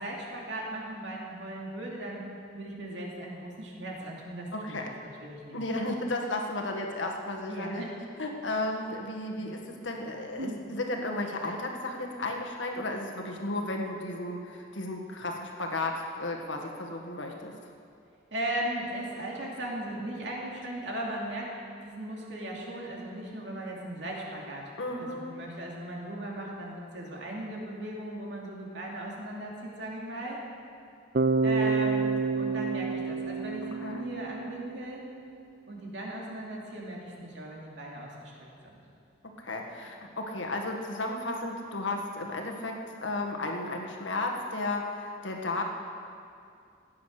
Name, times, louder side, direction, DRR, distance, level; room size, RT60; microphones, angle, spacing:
voice 1, 0.0-2.2 2.5-4.8 5.2-5.6 7.4-8.0 9.3-9.5 10.4-10.6 18.3-21.5 21.8-24.7 25.0-30.4 31.4-32.1 32.4-35.0 35.7-38.8, right 1 dB, 70° right, -2 dB, 2.8 m, -37 dB
voice 2, 4.5-4.9 5.5-7.9 8.2-17.5 24.8-25.4 33.8-34.0 39.2-45.6, left 2 dB, 85° left, 2 dB, 1.7 m, -34 dB
Bass guitar, 31.1-35.1, right 4 dB, 45° right, 0.4 m, -29 dB
16.0 x 9.6 x 6.6 m, 2.4 s
head